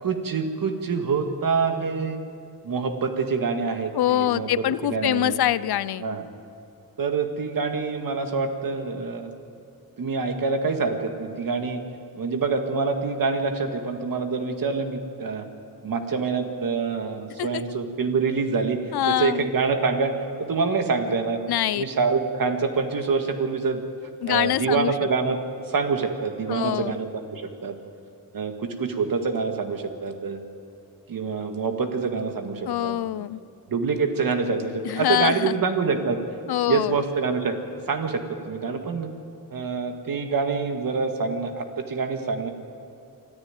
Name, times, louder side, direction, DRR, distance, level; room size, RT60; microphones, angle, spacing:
voice 1, 0.0-2.2 2.6-4.5 4.8-5.4 6.0-6.2 7.0-9.3 10.0-11.8 12.1-15.5 15.8-18.8 19.1-21.4 21.7-23.8 24.3-25.4 25.7-27.8 28.3-30.4 31.1-33.2 33.7-36.2 36.7-37.6 37.9-39.1 39.5-42.5, right 4 dB, 65° right, 6 dB, 1.9 m, -26 dB
voice 2, 3.9-6.1 17.4-17.6 18.9-19.5 21.5-21.8 24.2-24.9 26.5-27.0 32.7-33.4 34.8-35.6 36.5-37.0, left 12 dB, 80° left, 19 dB, 0.6 m, -24 dB
24.5 x 14.0 x 9.2 m, 2.5 s
wide cardioid pair, 140°, 37 cm